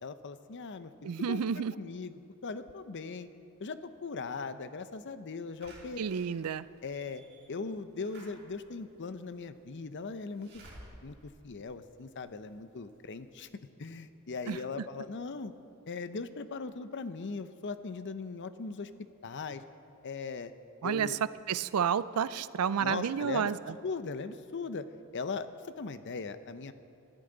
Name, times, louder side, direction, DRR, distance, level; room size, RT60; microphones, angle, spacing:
voice 1, 0.0-3.3 3.6-6.0 6.8-7.2 7.5-10.5 11.0-13.5 13.8-15.5 15.9-18.9 19.2-19.6 20.0-20.5 20.8-21.2 22.8-23.5 23.8-24.9 25.1-25.5 25.8-26.7, left 4 dB, 55° left, 11 dB, 0.6 m, -39 dB
voice 2, 1.0-1.7 6.0-6.7 14.5-14.8 20.8-21.2 21.5-23.7, right 7 dB, 85° right, 16 dB, 0.4 m, -31 dB
Slam / Alarm, 5.6-12.4 12.9-13.0 13.2-13.3, right 1 dB, 50° right, 4.4 m, -55 dB
19.5 x 13.5 x 3.9 m, 2.7 s
head